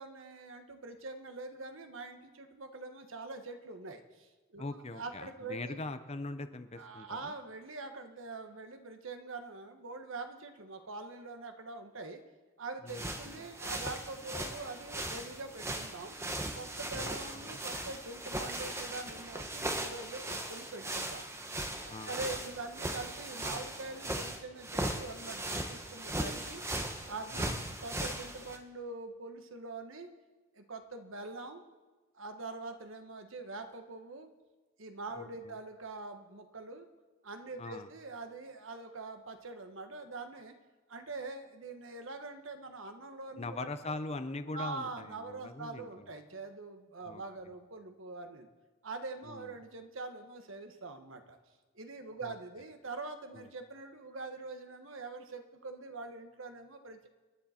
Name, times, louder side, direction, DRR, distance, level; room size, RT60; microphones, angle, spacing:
voice 1, 0.0-5.8 6.7-12.2 12.6-16.2 16.5-21.2 21.8-26.6 27.1-30.1 30.5-31.6 32.1-34.3 34.8-36.9 37.2-40.5 40.9-43.7 44.5-48.5 48.8-51.4 51.7-57.1, right 3 dB, 75° right, 6 dB, 1.4 m, -44 dB
voice 2, 4.6-7.3 12.8-13.5 16.9-17.6 21.9-22.1 27.3-27.6 35.2-35.5 37.6-37.9 43.4-46.1 47.1-47.2 49.2-49.5 52.2-52.3 53.3-53.5, left 2 dB, 30° left, 10 dB, 0.8 m, -42 dB
sound 1, 12.9-28.6, right 1 dB, 15° right, 1.2 m, -38 dB
28.0 x 11.0 x 4.4 m, 1.3 s
head